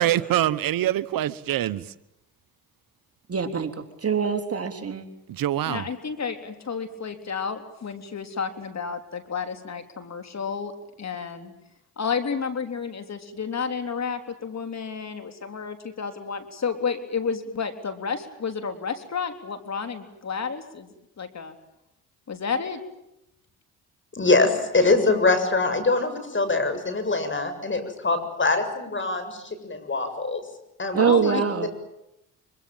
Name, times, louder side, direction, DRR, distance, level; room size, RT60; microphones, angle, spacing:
voice 1, 0.0-1.9 5.3-5.9, right 12 dB, 70° right, 17 dB, 1.0 m, -24 dB
voice 2, 3.3-3.7 4.0-5.0 30.9-31.7, right 6 dB, 40° right, 5 dB, 3.4 m, -23 dB
voice 3, 5.7-11.5 12.0-20.9 21.2-21.5 22.3-22.8 31.1-31.5, left 5 dB, 50° left, 8 dB, 3.6 m, -31 dB
voice 4, 24.1-30.4 30.8-31.3, left 3 dB, 35° left, 9 dB, 7.3 m, -23 dB
25.0 x 24.5 x 9.1 m, 0.85 s
supercardioid pair, 60°, 35 cm